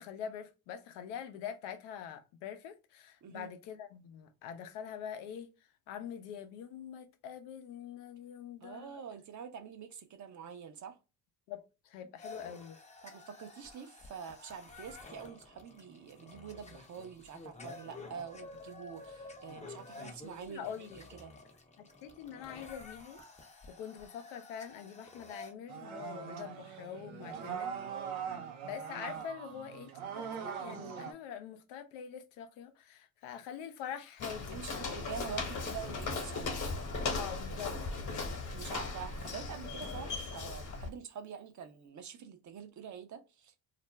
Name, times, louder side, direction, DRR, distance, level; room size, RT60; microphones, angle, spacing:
voice 1, 0.0-5.5 5.9-9.0 11.5-12.8 20.4-21.0 21.8-23.2 23.7-27.8 28.6-35.0 37.1-38.3, left 8 dB, 75° left, 0.6 m, -45 dB
voice 2, 3.2-3.5 8.6-11.0 13.0-20.9 21.1-21.3 27.4-27.6 34.5-36.5 38.5-43.5, right 7 dB, 40° right, 0.7 m, -46 dB
sound 1, 12.2-25.5, left 3 dB, 15° left, 0.6 m, -51 dB
sound 2, 25.7-31.1, right 7 dB, 90° right, 0.6 m, -41 dB
Walk footsteps, 34.2-40.9, left 3 dB, 45° left, 1.1 m, -37 dB
2.5 x 2.1 x 3.2 m
hypercardioid pair, 65°, 43 cm